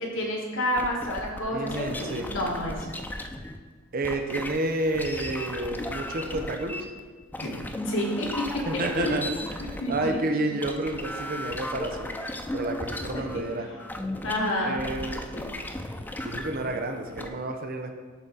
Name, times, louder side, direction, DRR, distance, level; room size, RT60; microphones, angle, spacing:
voice 1, 0.0-2.8 7.4-7.5 7.8-8.6 9.0-9.1 9.8-10.2 13.1-13.4 14.2-14.8 15.3-15.5, left 1 dB, 60° left, -2 dB, 1.5 m, -29 dB
sound 1, 0.8-3.6 4.0-17.3, left 1 dB, 10° left, 0.3 m, -36 dB
voice 2, 1.5-2.3 3.9-6.9 8.7-12.1 12.5-13.7 14.6-15.3 16.2-17.9, right 2 dB, 40° right, 4 dB, 0.6 m, -30 dB
11.0 x 3.8 x 4.0 m, 1.4 s
head